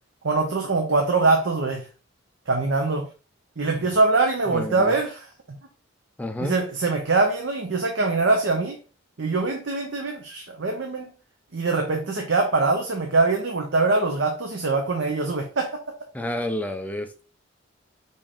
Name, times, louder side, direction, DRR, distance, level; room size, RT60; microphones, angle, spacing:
voice 1, 0.2-1.8 2.5-3.1 3.6-5.2 6.4-8.8 9.2-11.1 11.5-15.8, right 3 dB, 65° right, 3 dB, 0.7 m, -23 dB
voice 2, 4.5-5.0 6.2-6.6 16.1-17.2, left 1 dB, 10° left, 7 dB, 0.4 m, -30 dB
5.3 x 2.6 x 3.5 m, 0.34 s
head